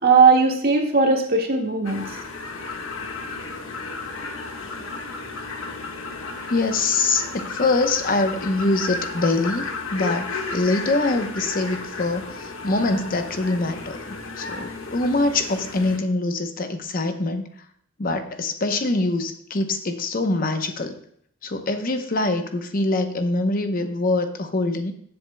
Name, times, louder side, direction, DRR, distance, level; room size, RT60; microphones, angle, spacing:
voice 1, 0.0-2.0, right 4 dB, 50° right, 1 dB, 1.7 m, -18 dB
sound 1, 1.8-16.0, left 3 dB, 70° left, 1.4 m, -33 dB
voice 2, 6.5-9.6 9.9-14.0 14.4-17.5 18.0-21.0 21.4-24.9, left 2 dB, 45° left, 7 dB, 0.8 m, -24 dB
16.0 x 7.8 x 2.2 m, 0.66 s
head